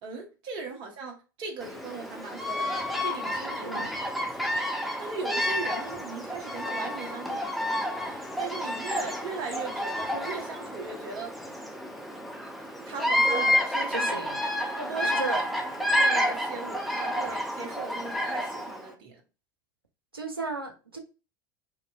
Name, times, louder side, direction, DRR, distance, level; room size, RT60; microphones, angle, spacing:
voice 1, 0.0-3.9 4.2-4.6 5.0-11.5 12.8-14.1 14.8-15.4 15.9-19.2, right 4 dB, 45° right, 0.9 m, -39 dB
Bird vocalization bird call bird song, 1.6-18.9, left 1 dB, ahead, 0.6 m, -30 dB
voice 2, 13.9-14.4 15.0-15.4 20.1-21.0, right 3 dB, 90° right, 0.6 m, -35 dB
2.9 x 2.6 x 2.2 m
figure-of-eight pair, 75°, 12 cm